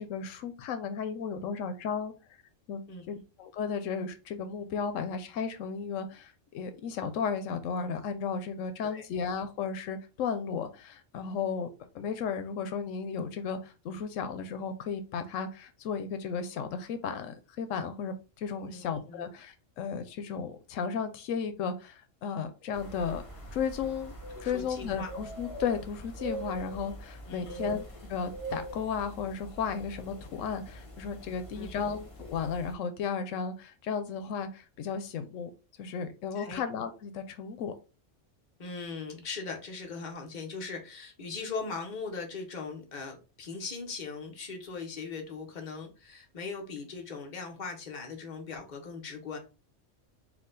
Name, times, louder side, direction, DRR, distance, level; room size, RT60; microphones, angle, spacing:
voice 1, 0.0-2.1 2.7-2.8 3.1-11.7 11.9-23.2 23.5-24.1 24.4-27.8 28.1-35.5 35.8-37.7, left 6 dB, 90° left, 9 dB, 1.0 m, -34 dB
voice 2, 2.9-3.2 8.8-9.0 18.6-19.2 24.3-25.1 27.3-27.7 31.6-31.9 36.3-36.6 38.6-49.4, left 4 dB, 40° left, 2 dB, 1.1 m, -40 dB
sound 1, 22.7-32.7, right 2 dB, 55° left, 1.7 m, -43 dB
4.7 x 2.3 x 3.8 m, 0.32 s
omnidirectional pair, 1.3 m